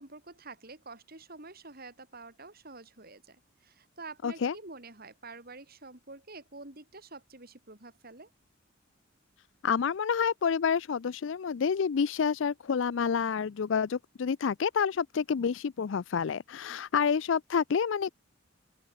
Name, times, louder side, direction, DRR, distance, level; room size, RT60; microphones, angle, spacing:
voice 1, 0.0-8.3 16.7-16.8, right 3 dB, 45° right, 3.9 m, -48 dB
voice 2, 4.2-4.5 9.6-18.1, left 6 dB, 65° left, 0.4 m, -28 dB
open air
head